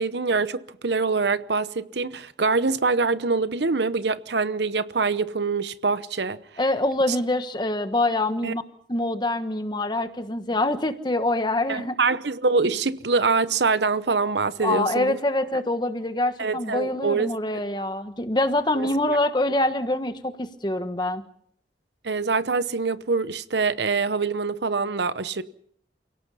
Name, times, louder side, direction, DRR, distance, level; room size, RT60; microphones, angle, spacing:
voice 1, 0.0-6.4 7.1-7.2 8.4-8.5 11.7-15.2 16.4-17.3 18.7-19.2 22.0-25.4, right 4 dB, 75° right, 0.9 m, -24 dB
voice 2, 6.6-8.6 8.9-12.0 14.6-21.2, left 2 dB, 25° left, 1.3 m, -25 dB
28.5 x 17.5 x 5.6 m
head